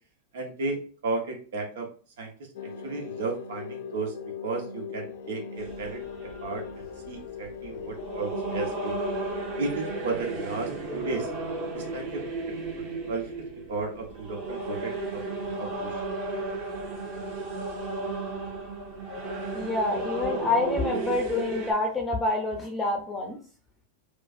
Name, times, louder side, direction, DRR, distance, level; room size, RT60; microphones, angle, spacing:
voice 1, 0.3-1.9 2.2-2.3 2.6-4.1 4.4-8.9 9.6-11.3 11.7-15.2 15.6-16.0, right 3 dB, 80° right, 2 dB, 1.2 m, -34 dB
sound 1, 2.5-14.3, left 6 dB, 75° left, 0.5 m, -41 dB
sound 2, 5.6-21.7, right 2 dB, 45° right, 1.4 m, -34 dB
voice 2, 19.5-23.4, left 2 dB, 10° left, 1 dB, 0.6 m, -27 dB
4.9 x 2.5 x 2.5 m, 0.40 s
supercardioid pair, 145°, 0 cm